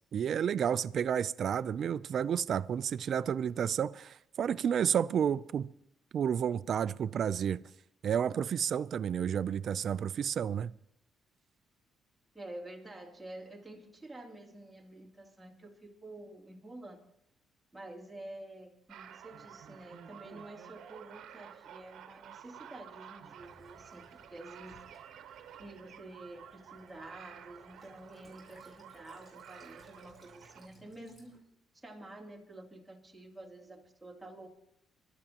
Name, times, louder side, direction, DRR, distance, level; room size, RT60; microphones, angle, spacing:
voice 1, 0.1-5.7 6.1-7.6 8.0-10.7, right 8 dB, 60° right, 0.4 m, -31 dB
voice 2, 12.3-17.1 17.7-24.8 25.6-31.4 31.7-34.5, right 1 dB, 5° right, 2.8 m, -49 dB
sound 1, 18.9-30.7, right 9 dB, 75° right, 1.0 m, -52 dB
Child speech kid speaking / Bird vocalization bird call bird song / Stream, 23.4-31.4, equal, 20° left, 6.5 m, -63 dB
26.0 x 12.0 x 2.9 m
cardioid pair, 90°, 0 cm